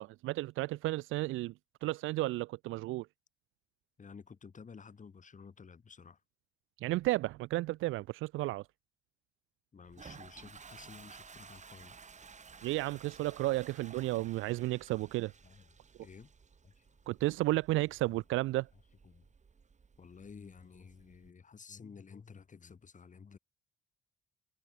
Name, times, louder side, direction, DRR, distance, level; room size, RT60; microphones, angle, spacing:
voice 1, 0.0-1.5 1.8-3.1 6.8-8.7 12.6-15.3 17.1-18.7, right 18 dB, 90° right, 0.6 m, -33 dB
voice 2, 4.0-6.2 9.7-12.0 14.1-14.3 15.4-15.7 16.0-16.3 16.6-16.9 18.1-18.2 19.0-19.3 20.0-23.4, left 5 dB, 40° left, 7.4 m, -53 dB
Toilet flush, 9.8-21.3, right 5 dB, 35° right, 4.5 m, -55 dB
cardioid pair, 90°, 20 cm